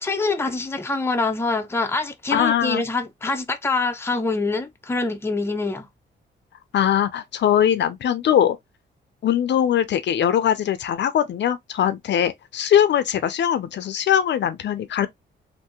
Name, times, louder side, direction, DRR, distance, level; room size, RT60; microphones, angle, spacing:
voice 1, 0.0-5.9, left 3 dB, 10° left, 0.6 m, -25 dB
voice 2, 2.3-2.8 6.7-8.6 9.2-15.1, left 9 dB, 60° left, 0.5 m, -21 dB
3.4 x 2.6 x 2.8 m
cardioid pair, 120°, 20 cm